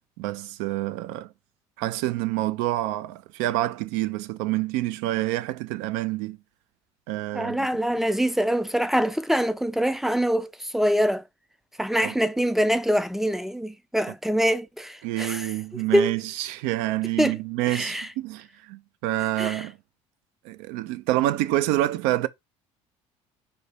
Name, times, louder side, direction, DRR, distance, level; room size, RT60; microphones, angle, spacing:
voice 1, 0.2-1.3 1.8-6.4 7.1-7.7 12.0-12.1 15.0-19.8 20.4-22.3, right 16 dB, 70° right, 0.4 m, -27 dB
voice 2, 7.3-11.2 11.8-15.5 15.9-16.1 17.2-17.4 17.7-18.1 19.4-19.6, equal, ahead, 0.4 m, -24 dB
4.0 x 2.8 x 3.3 m
hypercardioid pair, 65°, 15 cm